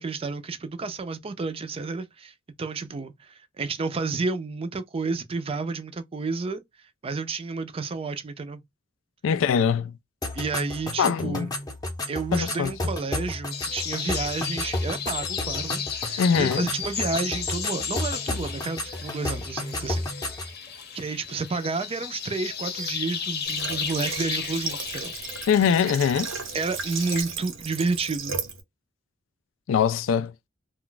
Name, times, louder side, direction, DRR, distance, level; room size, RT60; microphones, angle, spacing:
voice 1, 0.0-6.6 7.0-8.6 10.3-11.5 12.1-20.1 20.9-25.1 26.5-28.4, right 4 dB, 30° right, 0.4 m, -31 dB
voice 2, 9.2-9.9 11.0-11.5 12.3-12.7 16.2-16.7 25.5-26.3 29.7-30.3, left 7 dB, 85° left, 0.3 m, -22 dB
sound 1, 10.2-20.5, left 2 dB, 20° left, 0.6 m, -32 dB
sound 2, 13.5-27.2, left 7 dB, 55° left, 0.7 m, -34 dB
Water / Water tap faucet, 23.4-28.6, right 5 dB, 85° right, 0.8 m, -35 dB
2.4 x 2.2 x 3.8 m
head